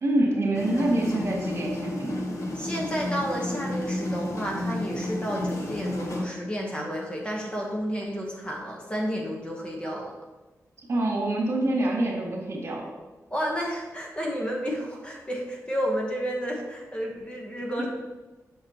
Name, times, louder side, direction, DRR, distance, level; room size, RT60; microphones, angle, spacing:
voice 1, 0.0-2.3 10.9-12.9 17.8-17.9, right 1 dB, 50° right, -3 dB, 2.0 m, -26 dB
sound 1, 0.5-6.2, left 1 dB, 60° left, 1.1 m, -31 dB
voice 2, 2.5-10.1 13.3-17.9, equal, 20° left, -1 dB, 1.1 m, -31 dB
7.7 x 6.0 x 2.9 m, 1.2 s
wide cardioid pair, 130°, 6 cm